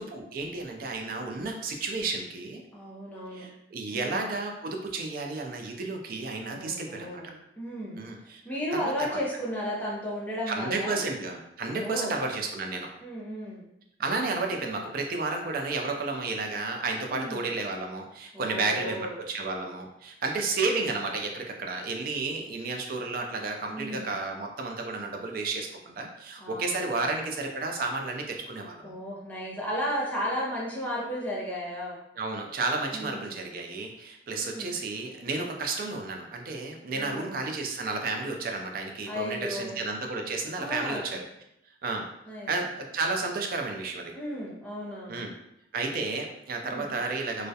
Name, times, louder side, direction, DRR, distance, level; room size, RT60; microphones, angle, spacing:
voice 1, 0.0-2.6 3.3-7.2 8.0-8.4 8.7-8.8 9.1-9.2 10.5-12.9 14.0-28.9 32.2-41.2 41.8-42.1 42.5-44.1 45.1-45.3 45.7-47.5, right 3 dB, 55° right, 2 dB, 0.4 m, -32 dB
voice 2, 2.7-3.5 3.9-4.3 6.5-11.0 11.7-12.2 13.0-13.6 17.1-17.4 18.3-19.1 23.6-24.1 26.4-27.2 28.8-32.0 32.9-33.3 34.4-34.8 36.9-37.4 39.1-39.7 40.6-41.1 42.2-42.5 44.1-45.2 46.6-46.9, equal, 10° left, -5 dB, 0.5 m, -34 dB
2.3 x 2.0 x 2.7 m, 0.80 s
head